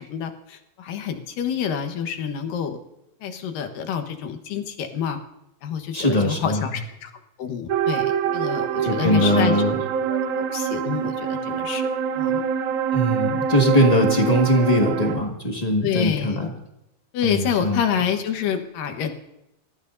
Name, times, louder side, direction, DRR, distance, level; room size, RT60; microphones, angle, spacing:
voice 1, 0.0-2.8 3.2-5.2 5.6-7.1 7.4-9.6 10.1-11.9 12.1-12.4 15.8-16.5 17.1-19.1, left 8 dB, 75° left, 6 dB, 2.9 m, -28 dB
voice 2, 5.9-6.6 8.8-9.7 12.9-16.5 17.2-17.8, equal, 25° left, 0 dB, 0.8 m, -21 dB
sound 1, 7.7-15.2, right 8 dB, 65° right, 2.3 m, -25 dB
26.0 x 14.5 x 2.7 m, 0.85 s
omnidirectional pair, 4.0 m